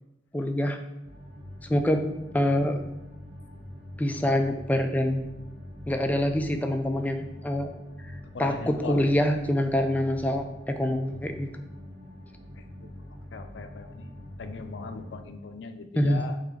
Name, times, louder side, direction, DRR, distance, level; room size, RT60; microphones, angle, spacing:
voice 1, 0.3-0.8 1.7-2.8 4.0-5.2 5.9-7.7 8.4-11.6 16.0-16.3, left 1 dB, 10° left, 5 dB, 0.3 m, -25 dB
sound 1, 1.0-15.2, equal, 35° right, 0.8 m, -44 dB
voice 2, 8.3-9.1 12.6-12.9 13.3-14.1 14.4-16.5, left 4 dB, 80° left, 8 dB, 0.4 m, -39 dB
4.0 x 2.8 x 4.5 m, 0.91 s
head